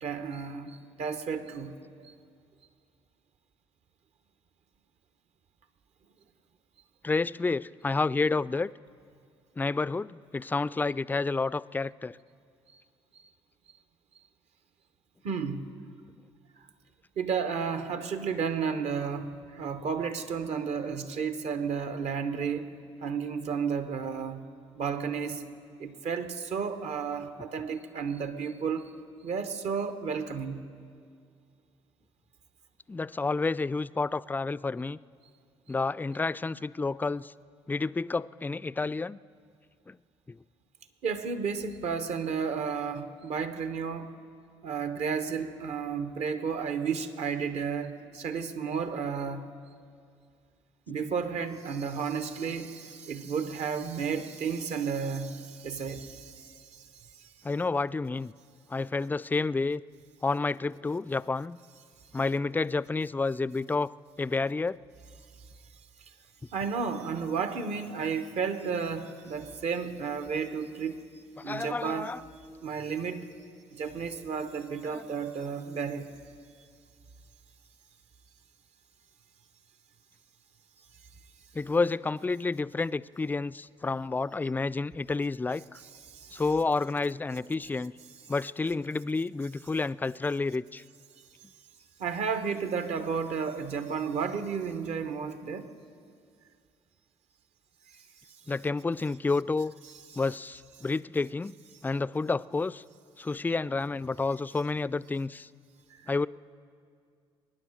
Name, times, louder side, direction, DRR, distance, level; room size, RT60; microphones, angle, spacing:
voice 1, 0.0-2.1 15.2-15.7 17.2-22.7 23.0-24.4 24.8-25.4 25.8-28.9 29.2-30.6 41.0-44.1 44.6-49.4 50.9-56.9 57.1-57.3 66.5-71.0 71.4-72.1 72.6-73.3 73.7-76.1 86.1-86.4 92.0-95.7 97.9-98.0 105.9-106.0, right 6 dB, 60° right, 10 dB, 1.1 m, -32 dB
voice 2, 7.0-8.7 9.6-12.2 32.9-35.0 35.7-37.3 37.7-39.2 39.9-40.0 40.3-40.4 57.4-58.3 58.7-59.8 60.2-61.6 62.1-63.9 64.2-64.8 71.4-72.2 74.9-75.0 81.5-85.8 86.3-87.9 88.3-90.8 98.5-99.7 100.2-101.5 101.8-102.8 103.2-105.5 106.1-106.3, left 3 dB, 15° left, 18 dB, 0.3 m, -30 dB
22.0 x 10.0 x 6.5 m, 2.3 s
hypercardioid pair, 50°, 12 cm